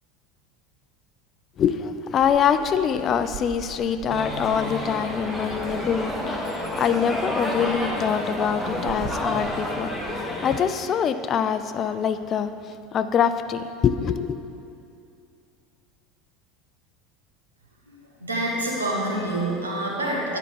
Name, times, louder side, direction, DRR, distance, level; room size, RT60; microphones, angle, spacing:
voice 1, 1.6-14.4, left 7 dB, 40° left, 11 dB, 0.3 m, -25 dB
Water, 2.2-10.2, right 8 dB, 55° right, 0.5 m, -43 dB
sound 1, 4.1-10.6, left 1 dB, 5° left, 1.3 m, -29 dB
voice 2, 17.8-20.4, right 1 dB, 85° right, -3 dB, 1.3 m, -27 dB
10.0 x 5.7 x 3.6 m, 2.6 s
figure-of-eight pair, 75°, 0 cm